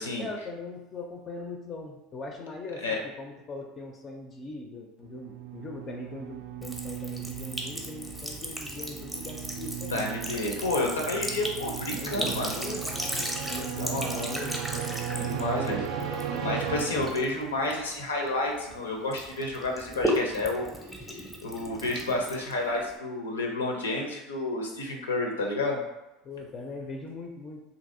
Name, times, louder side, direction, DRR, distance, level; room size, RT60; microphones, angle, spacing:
voice 1, 0.2-10.1 11.3-11.6 11.9-14.6 15.7-15.8 26.2-27.6, left 3 dB, 40° left, 1 dB, 0.4 m, -40 dB
sound 1, 5.0-17.7, right 8 dB, 65° right, 0.3 m, -36 dB
Sink (filling or washing) / Trickle dribble, 6.6-18.7 19.1-23.0, equal, 5° right, 0.6 m, -36 dB
voice 2, 9.9-12.5 13.8-14.4 15.1-15.8 16.4-20.7 21.0-25.8, left 2 dB, 90° left, 1 dB, 0.6 m, -30 dB
2.9 x 2.6 x 2.6 m, 0.98 s
hypercardioid pair, 80°, 0 cm